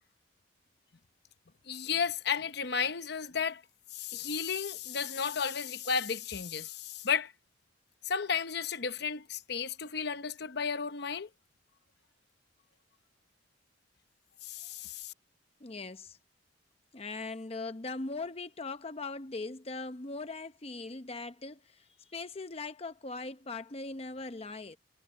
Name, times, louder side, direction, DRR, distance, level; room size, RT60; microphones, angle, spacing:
voice 1, 1.7-3.6 3.9-7.3 8.0-11.3 14.4-15.1, left 6 dB, 60° left, 0.9 m, -33 dB
voice 2, 15.6-16.2 16.9-24.8, left 3 dB, 35° left, 0.8 m, -40 dB
head